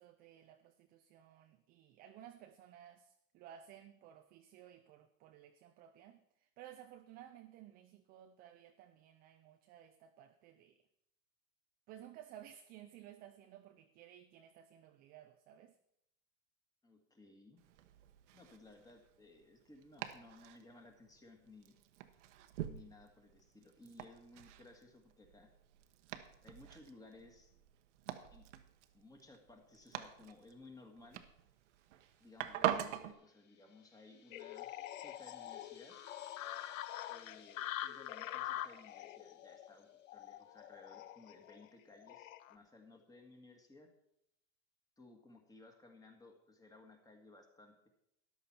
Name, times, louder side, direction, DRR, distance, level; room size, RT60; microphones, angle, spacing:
voice 1, 0.0-10.8 11.9-15.8, right 11 dB, 25° right, 0.5 m, -57 dB
voice 2, 16.8-17.6 18.3-21.8 22.6-25.5 26.4-27.5 28.3-28.5 28.9-31.2 32.2-34.7 35.0-36.0 37.1-43.9 45.0-47.9, left 2 dB, 10° left, 1.8 m, -59 dB
Domestic sounds home sounds, 17.6-33.1, right 11 dB, 65° right, 1.2 m, -45 dB
sound 1, 32.5-40.8, left 7 dB, 25° left, 1.4 m, -64 dB
sound 2, 34.3-42.5, left 12 dB, 80° left, 0.7 m, -45 dB
13.5 x 11.0 x 4.3 m
supercardioid pair, 140°, 39 cm